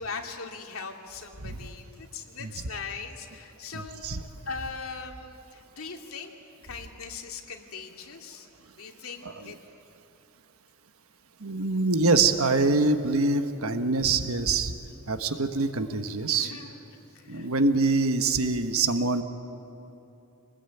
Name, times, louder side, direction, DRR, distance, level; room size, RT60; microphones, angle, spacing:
voice 1, 0.0-6.3 6.6-8.5 8.7-9.6 16.3-16.7 17.1-17.5, left 5 dB, 85° left, 2 dB, 2.5 m, -40 dB
voice 2, 3.7-4.2 9.2-9.5 11.4-14.7 15.1-16.5 17.3-19.2, right 3 dB, 90° right, 8 dB, 1.3 m, -25 dB
27.0 x 20.5 x 9.2 m, 2.8 s
head